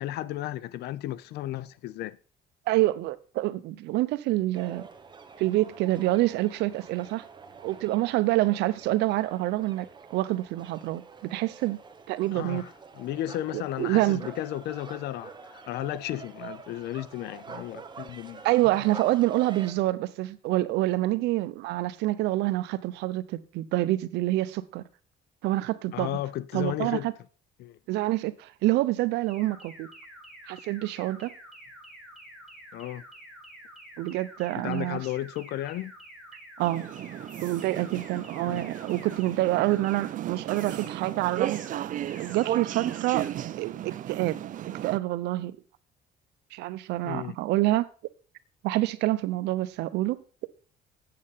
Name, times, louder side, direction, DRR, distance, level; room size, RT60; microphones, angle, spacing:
voice 1, 0.0-2.2 12.3-18.4 25.9-27.1 27.6-27.8 32.7-33.0 34.6-35.9 38.4-38.7 47.0-47.4, left 14 dB, 80° left, 0.6 m, -34 dB
voice 2, 2.7-4.8 5.4-7.3 7.6-11.8 12.1-12.6 13.5-14.2 18.4-24.8 25.4-26.2 26.5-27.1 27.9-29.9 30.5-31.3 34.0-35.0 36.6-36.9 37.4-41.9 42.2-43.3 43.6-43.8 44.1-44.4 44.8-45.6 46.5-47.9 48.6-50.2, right 17 dB, 85° right, 0.7 m, -27 dB
sound 1, 4.5-19.7, right 5 dB, 25° right, 1.2 m, -46 dB
sound 2, 29.3-39.3 39.7-40.1 40.5-40.9 41.3-41.7 42.1-42.5 42.9-43.3, equal, 5° right, 2.5 m, -48 dB
sound 3, 36.6-45.0, right 11 dB, 50° right, 0.5 m, -35 dB
8.7 x 7.6 x 5.6 m
cardioid pair, 110°, 17 cm